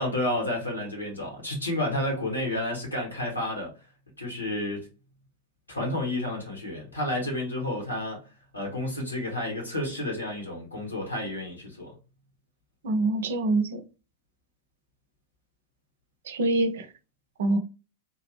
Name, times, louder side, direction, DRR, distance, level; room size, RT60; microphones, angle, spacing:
voice 1, 0.0-3.7 4.2-4.9 5.7-8.2 8.5-11.9, left 1 dB, 85° left, 1.8 m, -30 dB
voice 2, 12.8-13.8 16.3-16.9 17.4-17.6, right 2 dB, 60° right, 0.6 m, -25 dB
3.6 x 2.9 x 3.2 m
figure-of-eight pair, 90°, 0 cm